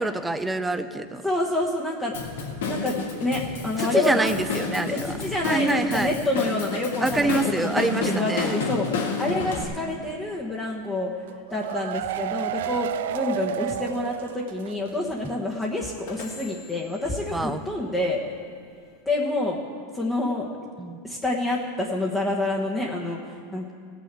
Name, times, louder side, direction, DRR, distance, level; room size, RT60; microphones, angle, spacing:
voice 1, 0.0-1.2 3.8-5.2 5.4-6.1 7.0-8.5 17.3-17.6 20.8-21.0, right 2 dB, 5° right, 10 dB, 0.6 m, -26 dB
voice 2, 1.2-2.1 2.7-4.4 4.9-18.2 19.0-19.6 19.9-20.5 21.0-23.7, left 2 dB, 10° left, -4 dB, 1.3 m, -27 dB
Drum kit / Drum, 2.1-9.6, left 4 dB, 90° left, 2.7 m, -30 dB
sound 1, 11.3-14.9 15.2-15.3 15.6-15.7, right 12 dB, 80° right, 0.4 m, -31 dB
sound 2, 12.0-19.0, left 5 dB, 60° left, 2.9 m, -50 dB
17.5 x 6.4 x 8.2 m, 2.2 s
supercardioid pair, 145°, 0 cm